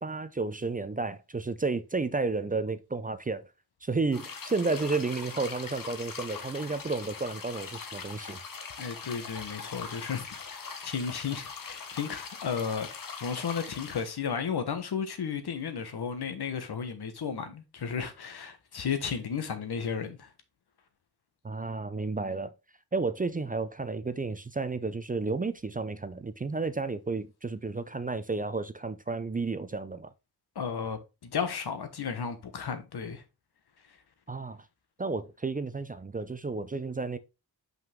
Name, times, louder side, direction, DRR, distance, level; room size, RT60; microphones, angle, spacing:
voice 1, 0.0-3.5 3.8-8.4 21.4-22.5 22.9-30.1 34.3-34.6 35.0-37.2, right 3 dB, 20° right, 0.5 m, -32 dB
sound 1, 4.1-14.1, left 5 dB, 60° left, 1.2 m, -41 dB
voice 2, 8.8-12.9 13.2-20.3 30.5-33.2 33.9-34.0, left 6 dB, 80° left, 1.4 m, -34 dB
5.7 x 5.4 x 3.6 m
wide cardioid pair, 135°, 38 cm